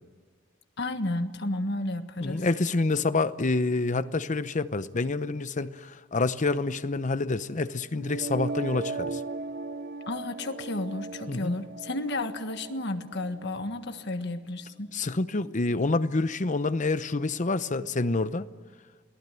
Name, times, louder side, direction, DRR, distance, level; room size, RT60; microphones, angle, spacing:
voice 1, 0.8-2.4 10.1-14.9, left 2 dB, 60° left, 1.6 m, -32 dB
voice 2, 2.2-9.2 11.3-11.5 14.9-18.5, left 3 dB, 40° left, 0.8 m, -27 dB
sound 1, 7.9-13.9, right 3 dB, 55° right, 1.0 m, -37 dB
28.5 x 18.5 x 9.1 m
head